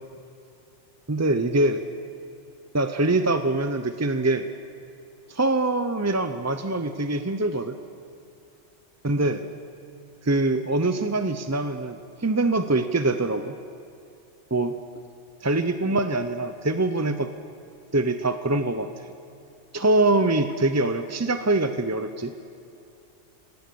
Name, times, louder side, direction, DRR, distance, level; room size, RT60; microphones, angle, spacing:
voice 1, 1.1-1.8 2.7-4.5 5.3-7.7 9.0-9.5 10.2-13.6 14.5-14.7 15.4-17.3 17.9-18.9 19.7-22.3, right 2 dB, 20° right, 9 dB, 0.5 m, -24 dB
25.5 x 17.0 x 6.9 m, 2.6 s
omnidirectional pair, 1.2 m